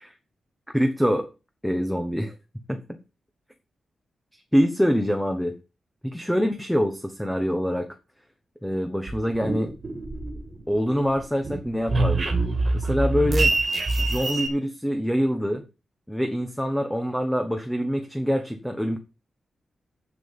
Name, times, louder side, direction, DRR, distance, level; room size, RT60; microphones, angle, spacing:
voice 1, 0.7-1.3 1.6-2.3 2.7-2.8 4.5-5.5 6.1-7.9 8.6-9.7 10.7-12.3 12.7-13.5 14.0-15.6 16.1-19.0, equal, ahead, 5 dB, 1.1 m, -25 dB
sound 1, 9.1-10.8 11.1-14.5, right 2 dB, 35° right, 2.0 m, -25 dB
7.6 x 7.1 x 7.2 m, 0.30 s
wide cardioid pair, 175°, 0 cm